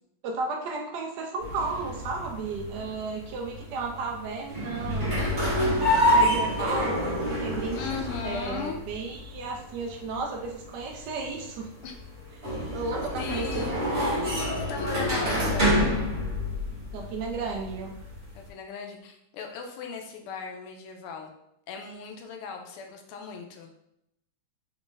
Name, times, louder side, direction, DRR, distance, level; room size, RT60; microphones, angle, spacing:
voice 1, 0.2-5.2 6.1-6.9 7.3-7.8 8.2-11.7 12.7-13.7 15.3-15.6 16.9-17.9, right 4 dB, 80° right, 0 dB, 0.9 m, -33 dB
sound 1, 1.4-18.5, equal, 30° right, 1.0 m, -28 dB
voice 2, 7.7-8.8 11.4-11.5 11.8-11.9 13.2-13.8 14.6-15.8 18.3-21.3 21.7-23.7, left 6 dB, 85° left, 3 dB, 1.5 m, -37 dB
4.1 x 2.4 x 3.8 m, 0.80 s
omnidirectional pair, 2.4 m